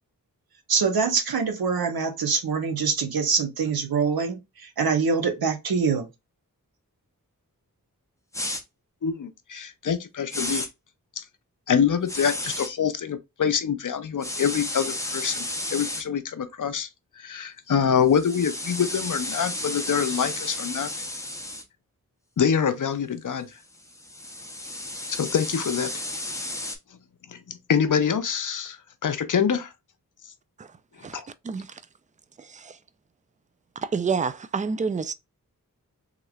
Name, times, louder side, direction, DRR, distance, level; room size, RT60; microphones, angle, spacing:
voice 1, 0.7-6.1, right 5 dB, 90° right, 0.9 m, -24 dB
sound 1, 8.3-8.6 10.3-10.7 12.1-12.7 14.2-16.0 18.1-21.6 23.7-26.8, left 1 dB, 10° left, 0.7 m, -32 dB
voice 2, 9.0-10.6 11.2-11.3 11.7-15.4 15.7-16.9 17.2-20.9 22.4-23.5 25.1-25.9 27.3-29.7 31.1-31.3, left 7 dB, 60° left, 0.6 m, -25 dB
voice 3, 33.9-35.1, right 5 dB, 25° right, 0.3 m, -26 dB
3.6 x 3.1 x 2.3 m
wide cardioid pair, 85°, 36 cm